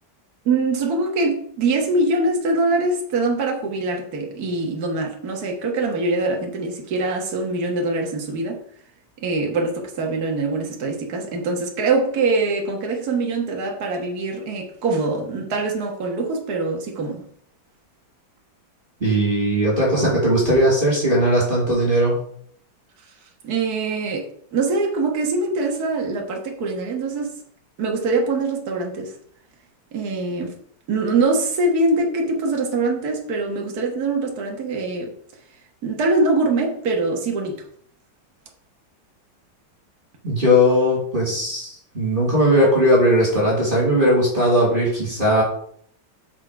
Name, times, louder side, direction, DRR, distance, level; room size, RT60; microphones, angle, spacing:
voice 1, 0.5-8.6 9.2-17.2 23.4-27.4 27.8-29.2 29.9-30.6 30.9-35.1 35.8-37.6, right 3 dB, 55° right, 1.9 m, -23 dB
voice 2, 19.0-22.2 40.2-45.4, equal, 25° right, 2.6 m, -18 dB
6.3 x 6.0 x 4.6 m
omnidirectional pair, 2.1 m